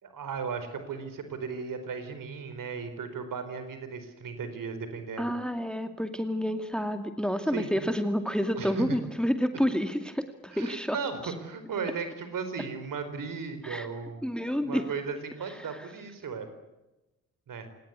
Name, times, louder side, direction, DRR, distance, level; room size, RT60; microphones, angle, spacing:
voice 1, 0.0-5.3 7.5-7.9 8.6-9.0 10.5-14.3 14.6-16.5 17.5-17.7, right 5 dB, 50° right, 9 dB, 4.5 m, -36 dB
voice 2, 5.2-11.0 11.2-11.3 13.6-13.9 14.2-14.9 15.7-15.9, equal, ahead, 8 dB, 2.2 m, -29 dB
28.5 x 19.5 x 8.3 m, 0.99 s
figure-of-eight pair, 40°, 42 cm